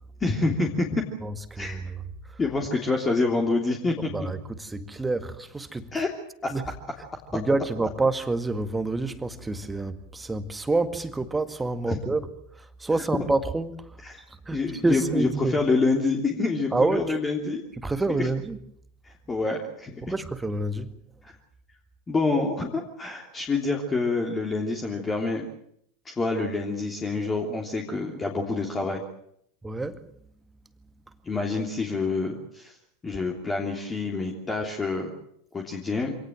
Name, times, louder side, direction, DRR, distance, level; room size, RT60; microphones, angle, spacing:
voice 1, 0.2-1.0 1.6-1.8 2.4-4.3 5.9-6.1 6.4-6.5 11.9-12.0 14.0-14.2 14.5-17.6 18.2-18.3 19.0-20.0 21.2-21.3 22.1-25.5 26.0-29.0 31.2-32.8 33.0-35.1 35.5-36.2, left 3 dB, 15° left, 3.2 m, -27 dB
voice 2, 1.2-2.0 2.2-2.4 4.1-5.9 6.5-6.7 7.3-12.3 12.5-15.6 16.7-17.1 17.8-18.6 20.0-20.9 29.6-30.0, right 2 dB, 10° right, 1.9 m, -28 dB
26.0 x 18.5 x 7.6 m
figure-of-eight pair, 85°, 0 cm